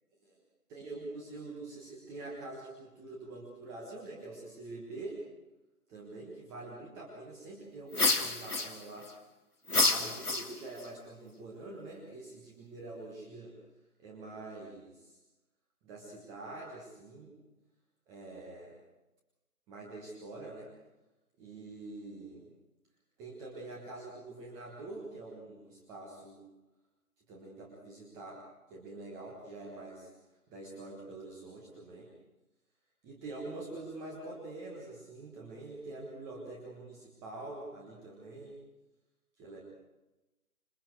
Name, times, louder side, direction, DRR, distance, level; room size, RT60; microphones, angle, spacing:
voice 1, 0.7-5.2 5.9-9.1 9.8-13.5 14.0-15.2 15.8-17.4 18.1-18.8 19.7-20.7 21.4-22.5 23.2-26.4 27.3-28.4 28.7-30.1 30.5-32.1 33.0-38.6 39.4-39.6, right 2 dB, 5° right, -2 dB, 1.3 m, -45 dB
sound 1, 7.9-9.1 9.7-10.9, left 2 dB, 80° left, 2.1 m, -29 dB
26.5 x 20.5 x 4.7 m, 1.0 s
figure-of-eight pair, 145°, 45 cm